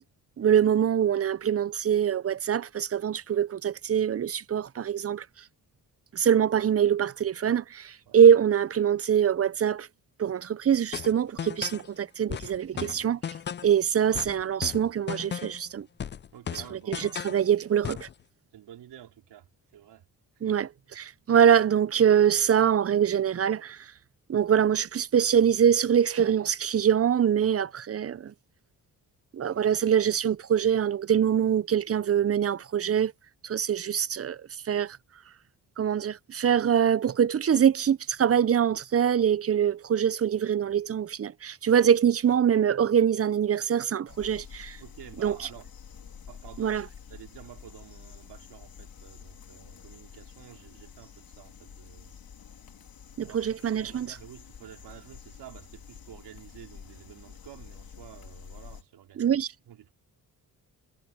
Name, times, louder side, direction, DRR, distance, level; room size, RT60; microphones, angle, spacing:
voice 1, 0.4-5.3 6.1-9.9 10.2-13.2 13.6-15.9 16.7-18.1 20.4-20.7 21.0-23.9 24.3-28.3 29.3-33.1 33.4-35.0 35.8-44.8 45.2-45.5 46.6-46.9 53.2-54.1 59.2-59.5, right 8 dB, 35° right, 0.7 m, -24 dB
sound 1, 10.9-11.9 12.3-13.8 14.1-15.7 16.0-17.4 17.8-18.1, left 8 dB, 30° left, 0.4 m, -36 dB
voice 2, 16.3-17.2 18.5-20.1 20.5-20.6 44.8-45.7 46.3-46.8 47.1-52.1 53.2-53.4 53.7-59.3 59.7-59.9, right 11 dB, 85° right, 4.0 m, -50 dB
sound 2, 44.1-58.8, left 7 dB, 60° left, 3.2 m, -48 dB
cardioid pair, 60°, 39 cm